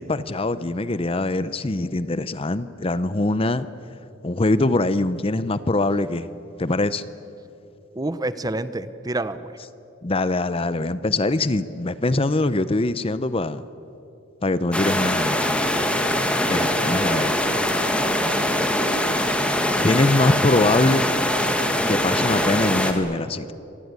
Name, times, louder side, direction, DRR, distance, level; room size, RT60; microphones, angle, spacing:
voice 1, 0.0-3.7 4.2-6.3 6.6-7.0 10.0-13.6 14.4-15.4 16.5-17.3 19.8-21.1 21.9-23.5, left 2 dB, 30° left, 15 dB, 0.7 m, -23 dB
voice 2, 7.9-9.6 16.8-17.3, right 2 dB, 20° right, 13 dB, 0.7 m, -29 dB
sound 1, 14.7-22.9, left 1 dB, 5° left, 1.9 m, -22 dB
26.0 x 18.5 x 9.6 m, 2.8 s
head